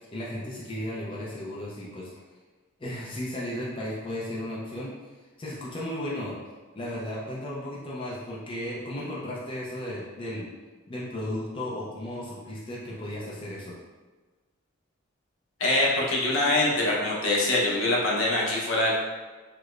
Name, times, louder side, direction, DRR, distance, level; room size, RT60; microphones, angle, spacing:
voice 1, 0.1-2.1 2.8-4.9 5.4-6.4 6.7-10.5 10.9-13.7, left 1 dB, 25° left, -6 dB, 0.5 m, -34 dB
voice 2, 15.6-18.9, left 2 dB, 75° left, -4 dB, 0.8 m, -24 dB
4.8 x 2.1 x 2.4 m, 1.3 s
head